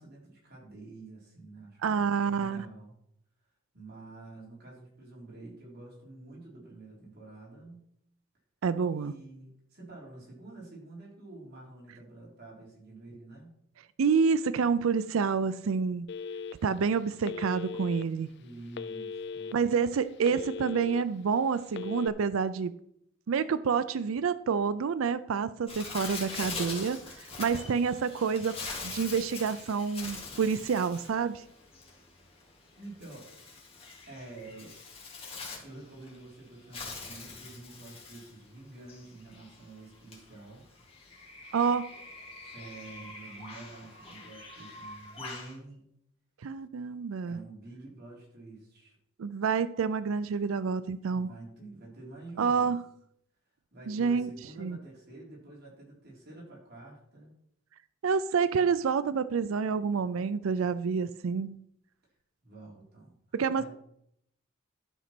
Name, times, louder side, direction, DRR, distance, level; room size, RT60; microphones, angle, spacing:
voice 1, 0.0-2.9 3.7-7.9 8.9-13.5 18.4-19.5 32.8-33.3 34.1-34.8 35.6-40.7 42.4-45.9 47.3-49.0 51.1-52.7 53.7-57.3 62.4-63.1 63.6-63.7, right 2 dB, 50° right, -4 dB, 4.1 m, -48 dB
voice 2, 1.8-2.7 8.6-9.1 14.0-16.1 16.6-18.3 19.5-22.7 23.3-28.6 28.8-31.4 41.5-41.9 46.4-47.4 49.2-51.3 52.4-52.8 53.9-54.3 54.6-54.8 58.0-61.6 63.3-63.6, right 5 dB, 90° right, 15 dB, 0.4 m, -28 dB
Telephone, 16.1-16.8 17.2-18.0 18.7-19.5 20.0-21.0 21.7-22.1, left 5 dB, 55° left, 0.4 m, -38 dB
Bird, 25.7-45.5, left 3 dB, 30° left, 2.5 m, -43 dB
12.0 x 5.2 x 6.0 m, 0.73 s
head